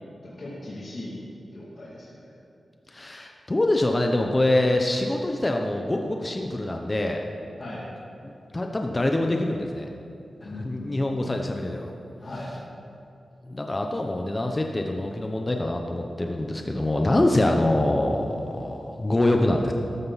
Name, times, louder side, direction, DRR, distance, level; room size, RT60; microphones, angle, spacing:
voice 1, 0.2-1.2 1.5-2.2 7.6-7.8 10.4-11.0 12.2-12.5, left 1 dB, 50° left, -8 dB, 2.4 m, -38 dB
voice 2, 2.9-7.2 8.2-9.9 10.4-11.9 13.5-19.7, left 1 dB, 20° left, 2 dB, 0.8 m, -25 dB
13.5 x 13.0 x 4.1 m, 2.6 s
wide cardioid pair, 130°, 0 cm